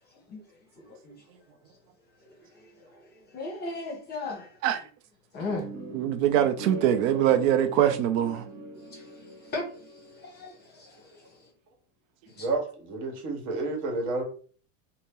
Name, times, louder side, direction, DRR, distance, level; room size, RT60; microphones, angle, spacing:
voice 1, 0.8-1.2 2.3-4.6 5.3-5.7 8.9-11.5 12.3-12.5, left 3 dB, 25° left, 0.7 m, -38 dB
sound 1, 5.5-10.6, right 1 dB, 25° right, 0.5 m, -42 dB
voice 2, 5.9-8.5, right 10 dB, 75° right, 0.5 m, -23 dB
voice 3, 12.4-14.2, right 3 dB, 55° right, 1.2 m, -30 dB
2.7 x 2.0 x 3.5 m
supercardioid pair, 155°, 40 cm